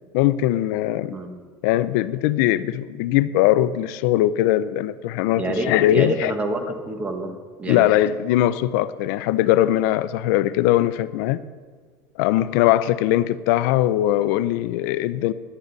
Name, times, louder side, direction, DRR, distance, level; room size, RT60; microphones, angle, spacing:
voice 1, 0.1-1.2 1.6-6.3 7.7-11.4 12.2-15.3, left 13 dB, 75° left, 14 dB, 0.5 m, -20 dB
voice 2, 5.4-7.9, right 1 dB, 15° right, 5 dB, 1.1 m, -27 dB
17.5 x 11.0 x 4.0 m, 1.5 s
cardioid pair, 180°, 10 cm